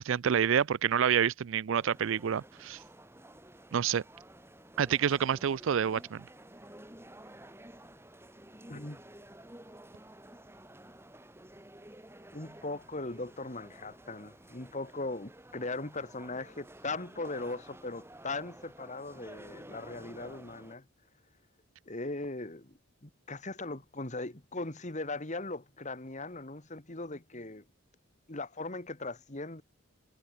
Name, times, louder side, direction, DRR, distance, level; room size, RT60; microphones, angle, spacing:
voice 1, 0.0-2.8 3.7-4.0 4.8-6.2, right 8 dB, 65° right, 0.4 m, -28 dB
sound 1, 1.7-20.8, right 1 dB, 10° right, 4.7 m, -52 dB
voice 2, 8.7-9.0 12.3-20.8 21.9-22.7 23.0-27.6 28.3-29.6, left 2 dB, 35° left, 1.9 m, -39 dB
head